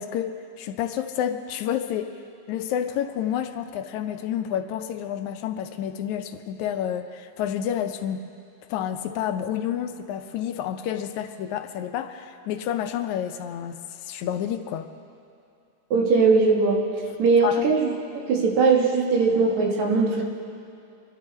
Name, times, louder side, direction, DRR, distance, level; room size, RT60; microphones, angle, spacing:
voice 1, 0.0-2.1 2.5-8.3 8.7-14.9 17.4-17.6, left 9 dB, 80° left, 8 dB, 2.0 m, -29 dB
voice 2, 15.9-16.8 17.2-17.9 18.3-20.2, right 4 dB, 70° right, -1 dB, 3.0 m, -20 dB
25.0 x 12.0 x 4.2 m, 2.5 s
omnidirectional pair, 3.5 m